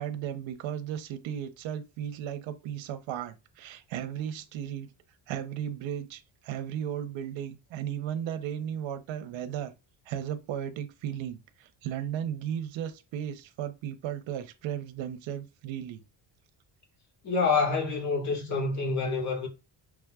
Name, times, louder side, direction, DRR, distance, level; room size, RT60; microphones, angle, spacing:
voice 1, 0.0-4.9 5.3-9.7 10.1-16.0, right 10 dB, 80° right, 0.9 m, -35 dB
voice 2, 17.2-19.5, left 4 dB, 35° left, 1.8 m, -27 dB
6.2 x 3.4 x 2.3 m
cardioid pair, 175°, 45 cm